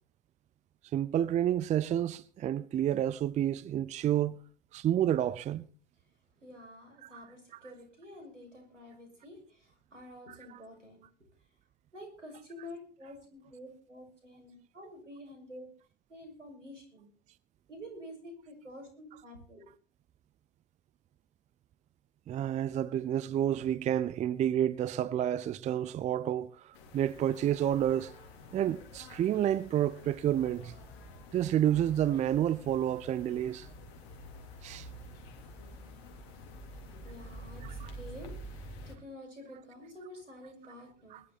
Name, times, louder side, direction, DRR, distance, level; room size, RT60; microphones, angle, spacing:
voice 1, 0.9-4.4 4.7-5.7 7.0-7.1 10.5-10.6 22.3-28.1 28.5-30.8 31.3-33.7 34.6-34.9 37.6-37.9 41.1-41.2, right 11 dB, 20° right, 0.6 m, -29 dB
voice 2, 6.4-11.1 11.9-15.7 16.1-17.1 17.7-19.6 36.7-41.2, left 1 dB, 90° right, 6.4 m, -49 dB
sound 1, 26.7-39.0, equal, 55° left, 3.8 m, -48 dB
20.5 x 12.0 x 4.2 m
figure-of-eight pair, 90°, 36 cm